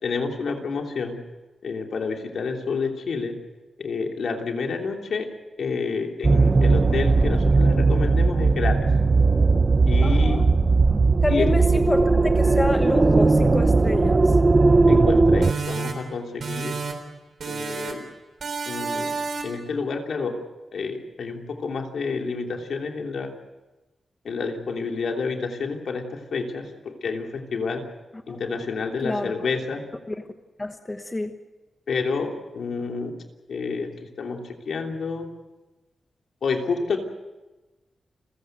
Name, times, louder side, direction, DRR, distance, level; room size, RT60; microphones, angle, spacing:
voice 1, 0.0-1.2 1.6-3.4 3.8-5.3 5.6-8.9 9.8-10.5 11.3-11.8 14.9-16.8 17.4-18.1 18.7-19.1 19.4-20.4 20.7-23.3 24.2-27.9 28.3-29.9 31.9-33.1 33.5-35.3 36.4-37.0, left 4 dB, 65° left, 3 dB, 3.2 m, -29 dB
sound 1, 6.2-15.5, right 3 dB, 25° right, 0.8 m, -18 dB
voice 2, 10.0-10.5 11.2-14.3 28.3-28.4 29.0-29.3 30.1-30.2 30.6-31.4, left 2 dB, 15° left, 6 dB, 1.1 m, -28 dB
sound 2, 15.4-17.1 17.4-18.1 18.4-19.7, right 4 dB, 60° right, 3.8 m, -31 dB
29.5 x 16.0 x 8.0 m, 1.1 s
wide cardioid pair, 155°, 0 cm